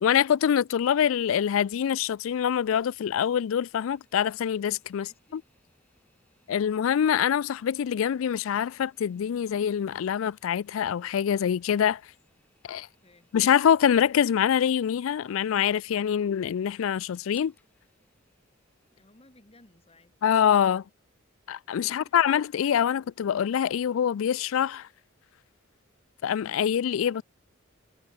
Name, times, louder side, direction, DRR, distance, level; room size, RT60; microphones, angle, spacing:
voice 1, 0.0-5.1 5.3-5.4 6.5-12.0 12.6-12.9 13.3-17.5 20.2-20.8 21.5-24.9 26.2-27.2, left 8 dB, 75° left, 0.3 m, -25 dB
sound 1, 3.7-21.8, left 1 dB, 10° left, 5.9 m, -68 dB
voice 2, 4.9-5.4 13.0-13.3 18.8-20.3, left 2 dB, 30° left, 2.3 m, -58 dB
head